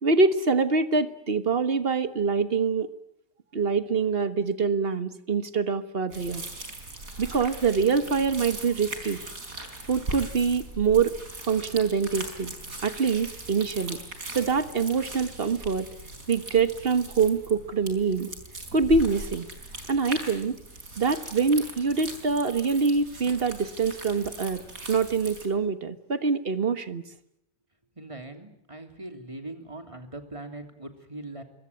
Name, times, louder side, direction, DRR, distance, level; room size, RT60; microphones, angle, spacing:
voice 1, 0.0-2.9 3.5-6.4 7.2-9.2 9.9-11.1 11.5-12.5 12.8-14.0 14.3-15.9 16.3-18.3 18.7-19.5 19.9-20.6 21.0-24.6 24.9-27.0, right 5 dB, 40° right, 11 dB, 1.5 m, -25 dB
sound 1, 6.1-25.5, right 2 dB, 65° right, 5.0 m, -40 dB
voice 2, 28.0-31.4, right 2 dB, 20° right, 5 dB, 2.9 m, -41 dB
25.5 x 22.5 x 9.5 m, 0.76 s
omnidirectional pair, 1.6 m